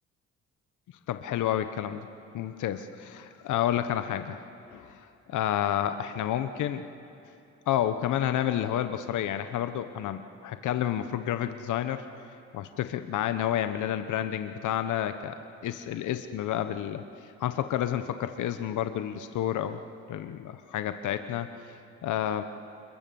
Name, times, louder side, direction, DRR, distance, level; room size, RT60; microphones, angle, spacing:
voice 1, 1.1-2.1 2.3-4.4 4.7-4.9 5.3-6.9 7.7-12.0 12.5-17.0 17.4-19.8 20.1-21.5 22.0-22.4, left 11 dB, 80° left, 10 dB, 1.0 m, -30 dB
28.0 x 21.5 x 7.1 m, 2.7 s
cardioid pair, 90°, 30 cm